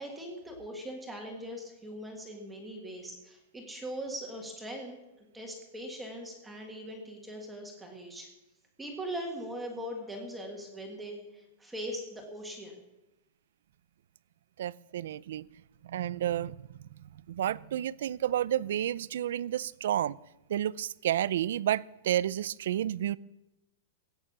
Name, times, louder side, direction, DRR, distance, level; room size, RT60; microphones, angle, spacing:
voice 1, 0.0-8.3 8.8-12.8, equal, 5° right, 1 dB, 1.8 m, -41 dB
voice 2, 14.6-15.4 15.9-16.6 17.3-20.2 20.5-23.2, right 11 dB, 65° right, 21 dB, 0.4 m, -30 dB
17.5 x 9.0 x 7.3 m, 0.96 s
supercardioid pair, 180°, 0 cm